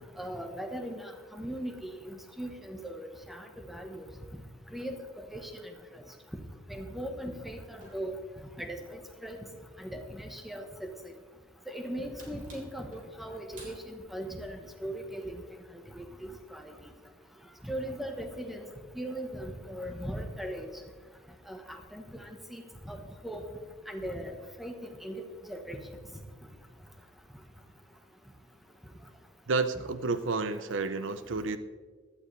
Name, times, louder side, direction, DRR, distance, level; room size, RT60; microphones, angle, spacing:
voice 1, 0.2-4.1 4.7-5.5 5.9-6.0 6.7-8.2 8.6-9.4 9.8-10.9 11.7-15.4 15.9-16.7 17.6-18.7 18.9-20.7 21.5-23.0 23.2-23.4 23.9-25.8, equal, ahead, 4 dB, 1.2 m, -39 dB
sound 1, 7.8-8.8 9.1-9.2 9.6-10.4 10.7-10.8 11.4-14.2 15.6-15.9 16.2-16.4, right 2 dB, 45° right, 3.5 m, -55 dB
voice 2, 29.5-31.6, right 3 dB, 75° right, 12 dB, 0.6 m, -30 dB
16.0 x 11.5 x 3.3 m, 1.5 s
head